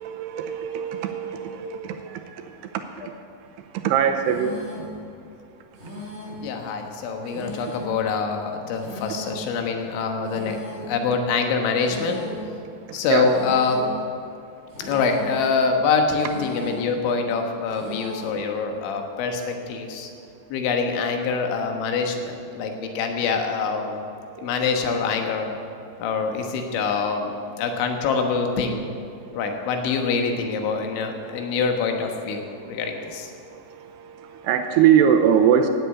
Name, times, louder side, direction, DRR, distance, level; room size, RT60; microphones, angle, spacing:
voice 1, 0.0-2.4 3.8-4.6 11.0-11.2 12.3-12.8 13.1-13.3 22.6-23.1 24.4-24.7 31.5-31.6 32.4-35.7, right 8 dB, 80° right, 6 dB, 2.6 m, -23 dB
sound 1, 4.3-5.0 5.8-6.5 7.3-8.0 8.8-9.5 10.3-11.0 11.8-12.5 13.3-14.0 14.7-15.4 16.2-16.9 17.7-18.4, left 1 dB, 40° right, 5.3 m, -37 dB
voice 2, 6.4-12.2 12.9-13.8 14.8-20.1 20.5-24.0 24.4-25.5 26.0-28.8 29.3-33.3, left 5 dB, 85° left, 4 dB, 3.7 m, -25 dB
16.5 x 8.1 x 8.3 m, 2.6 s
omnidirectional pair, 5.2 m